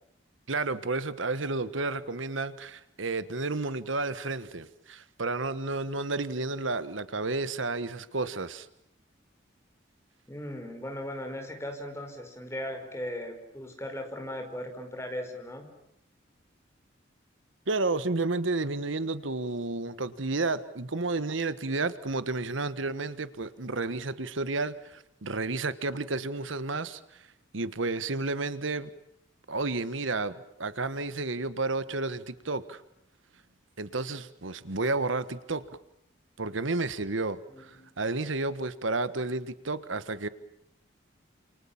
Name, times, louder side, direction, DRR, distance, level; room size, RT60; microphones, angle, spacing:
voice 1, 0.5-8.7 17.7-27.3 27.5-28.9 29.5-32.8 33.8-35.7 36.4-40.3, right 3 dB, 80° right, 13 dB, 1.4 m, -31 dB
voice 2, 10.3-15.7 37.5-37.9, left 1 dB, 15° left, 4 dB, 5.1 m, -38 dB
29.0 x 28.0 x 7.2 m, 0.76 s
head